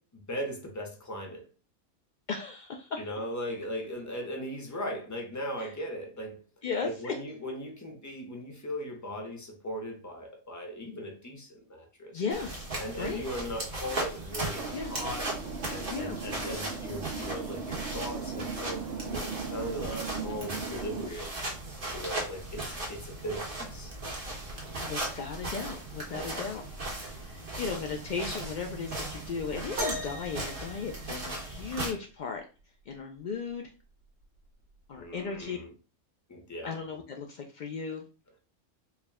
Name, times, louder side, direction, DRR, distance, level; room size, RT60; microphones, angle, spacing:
voice 1, 0.3-1.5 3.0-6.4 6.8-12.2 12.8-15.3 15.7-21.3 21.9-23.9 26.2-26.4 35.0-35.7 36.3-36.8, equal, 20° left, 0.6 m, -38 dB
voice 2, 2.3-3.0 5.6-5.7 6.6-7.2 12.1-12.7 13.0-13.2 14.7-14.9 15.9-16.2 24.8-32.4 32.9-33.7 34.9-35.6 36.6-38.0, left 5 dB, 75° left, 0.4 m, -36 dB
sound 1, 12.3-31.9, right 2 dB, 45° right, 1.3 m, -37 dB
sound 2, 14.5-21.1, right 5 dB, 60° right, 0.8 m, -38 dB
sound 3, 29.8-31.7 33.3-33.4 34.2-34.4 35.4-35.5, right 1 dB, 85° right, 1.6 m, -37 dB
4.7 x 2.1 x 3.5 m
omnidirectional pair, 1.3 m